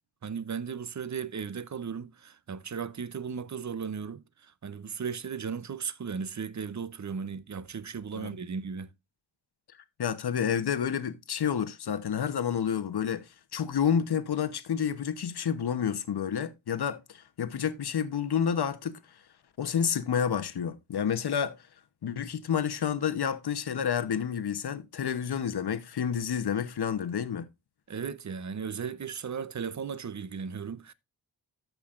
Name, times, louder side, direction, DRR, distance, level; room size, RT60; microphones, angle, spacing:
voice 1, 0.2-8.9 27.9-30.9, right 6 dB, 40° right, 0.7 m, -36 dB
voice 2, 10.0-13.2 13.5-19.0 19.6-21.5 22.0-27.5, left 8 dB, 60° left, 1.0 m, -29 dB
14.0 x 6.0 x 2.5 m
cardioid pair, 75°, 43 cm